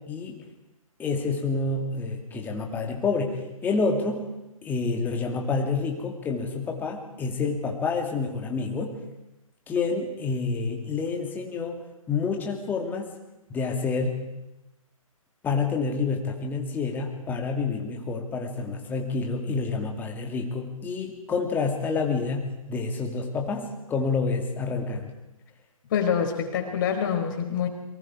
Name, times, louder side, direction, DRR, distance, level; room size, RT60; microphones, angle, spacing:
voice 1, 0.1-0.4 1.0-4.2 4.6-9.0 9.7-11.8 12.1-13.1 13.5-14.2 15.4-25.1, left 4 dB, 10° left, 2 dB, 2.5 m, -28 dB
voice 2, 25.9-27.7, left 7 dB, 35° left, 3 dB, 4.2 m, -26 dB
29.5 x 24.0 x 4.8 m, 0.97 s
figure-of-eight pair, 135°, 18 cm